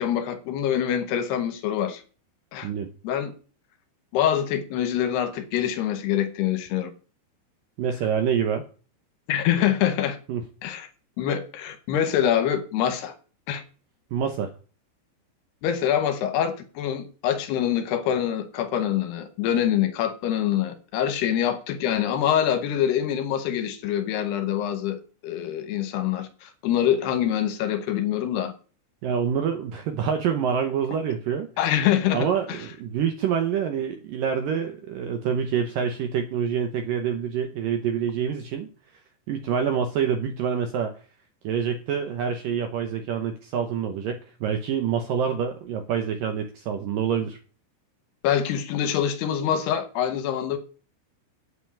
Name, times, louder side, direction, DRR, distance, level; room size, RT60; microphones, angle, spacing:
voice 1, 0.0-2.0 2.5-2.7 3.0-3.3 4.1-6.9 9.3-10.2 10.6-10.9 11.2-13.1 13.5-13.6 15.6-28.5 31.6-32.6 48.2-50.6, left 10 dB, 70° left, 2.7 m, -25 dB
voice 2, 7.8-8.6 10.3-10.4 14.1-14.5 29.0-31.5 32.1-38.7 39.3-40.9 41.4-47.4, right 7 dB, 85° right, 1.9 m, -26 dB
8.7 x 8.1 x 8.6 m
omnidirectional pair, 5.5 m